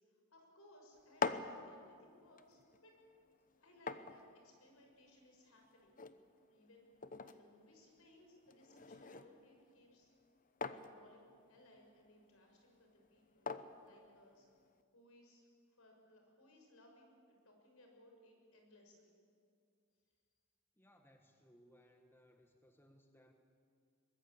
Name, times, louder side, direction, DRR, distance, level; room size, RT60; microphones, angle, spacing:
voice 1, 0.3-2.9 3.6-6.0 6.5-6.9 7.2-10.1 10.8-13.5 13.8-14.5 14.9-17.2 17.4-19.2, left 1 dB, 65° left, 2 dB, 5.9 m, -65 dB
sound 1, 0.9-14.8, left 5 dB, 40° left, 0.9 m, -47 dB
voice 2, 20.8-23.3, equal, 10° left, 4 dB, 1.3 m, -66 dB
23.0 x 20.0 x 8.5 m, 2.3 s
head